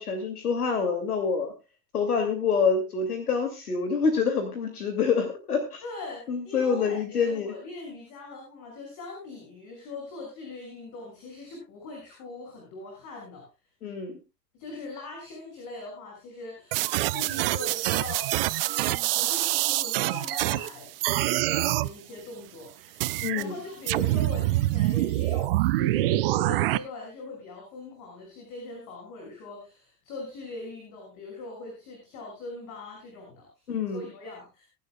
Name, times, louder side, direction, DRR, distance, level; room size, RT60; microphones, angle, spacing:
voice 1, 0.0-1.5 1.9-5.8 6.3-7.5 13.8-14.2 23.2-23.6 33.7-34.1, left 5 dB, 70° left, 6 dB, 2.7 m, -26 dB
voice 2, 5.8-13.4 14.5-18.3 18.6-33.5 33.9-34.7, left 3 dB, 40° left, 0 dB, 6.1 m, -41 dB
sound 1, 16.7-20.7 21.0-21.9 23.0-23.4 23.9-26.8, right 17 dB, 40° right, 0.5 m, -25 dB
23.0 x 11.0 x 2.3 m, 0.29 s
figure-of-eight pair, 90°, 47 cm